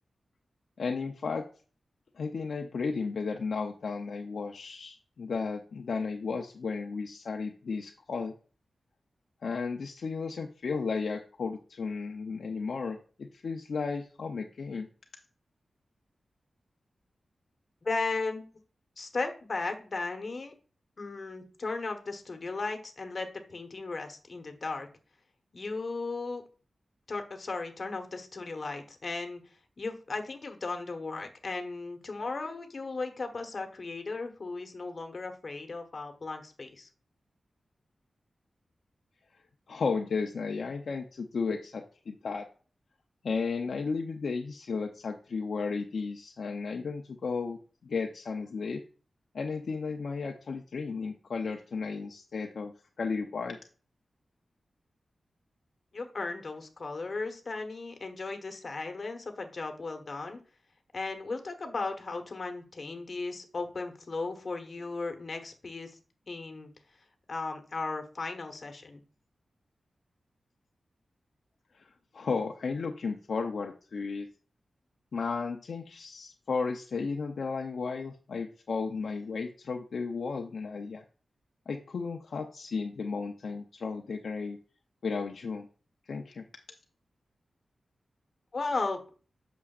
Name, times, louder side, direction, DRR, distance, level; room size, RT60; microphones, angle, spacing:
voice 1, 0.8-1.5 2.2-8.3 9.4-14.9 39.7-42.5 43.2-47.6 47.8-48.8 49.3-52.7 53.0-53.6 72.1-74.3 75.1-81.0 81.7-84.6 85.0-85.7 86.1-86.5, left 4 dB, 65° left, 2 dB, 0.6 m, -34 dB
voice 2, 17.8-18.5 19.0-20.5 21.0-24.9 25.5-26.4 27.1-29.4 29.8-36.9 55.9-60.4 60.9-65.9 66.3-66.7 67.3-69.0 88.5-89.0, left 3 dB, 40° left, 5 dB, 1.3 m, -36 dB
8.4 x 6.3 x 2.4 m, 0.38 s
wide cardioid pair, 165°, 0 cm